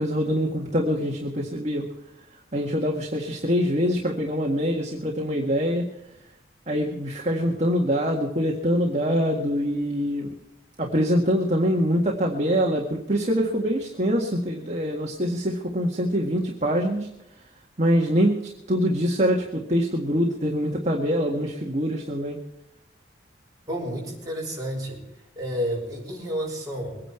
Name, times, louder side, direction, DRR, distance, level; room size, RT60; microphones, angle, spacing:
voice 1, 0.0-1.9 2.5-5.9 6.7-10.3 10.8-17.1 17.8-18.4 18.7-22.4, equal, 40° right, 0 dB, 1.8 m, -24 dB
voice 2, 23.7-25.0 25.3-27.0, equal, 20° right, -3 dB, 6.5 m, -30 dB
23.0 x 9.8 x 4.5 m, 0.88 s
head